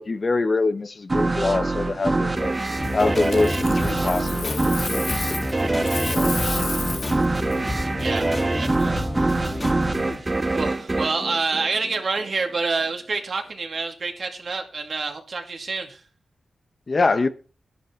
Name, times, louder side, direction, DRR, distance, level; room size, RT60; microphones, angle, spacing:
voice 1, 0.0-2.5 2.9-5.4 5.7-6.3 16.9-17.3, left 3 dB, 45° left, 0.9 m, -25 dB
sound 1, 1.1-12.3, right 2 dB, 30° right, 1.1 m, -24 dB
sound 2, 2.8-10.2, left 1 dB, 25° left, 2.6 m, -31 dB
Coin (dropping), 3.1-5.5 5.8-7.2 10.1-10.3, left 5 dB, 75° left, 0.9 m, -32 dB
voice 2, 8.0-8.3 8.6-9.6 10.5-16.0, right 4 dB, 65° right, 2.4 m, -28 dB
12.0 x 11.0 x 4.5 m
cardioid pair, 75°, 0 cm